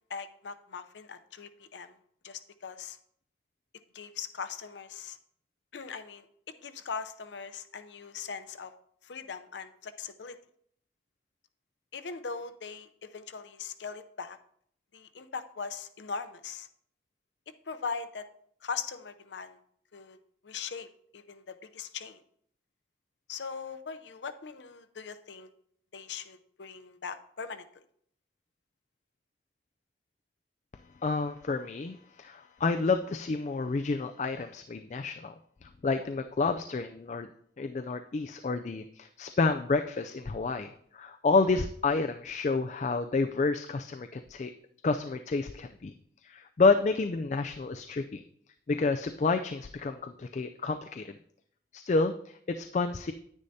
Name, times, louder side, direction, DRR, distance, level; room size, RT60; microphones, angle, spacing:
voice 1, 0.0-2.0 2.2-3.0 3.9-5.2 5.7-6.3 6.6-8.7 9.0-10.4 11.9-14.4 14.9-16.7 17.7-18.3 18.6-19.6 19.9-20.2 20.4-20.9 21.1-22.2 23.3-25.5 25.9-27.7, left 5 dB, 90° left, 11 dB, 0.6 m, -40 dB
voice 2, 31.0-35.3 35.6-37.3 37.6-44.5 44.8-45.9 46.2-48.2 48.7-51.2 51.7-53.1, left 3 dB, 40° left, 7 dB, 0.3 m, -29 dB
9.8 x 9.7 x 2.7 m, 0.66 s
head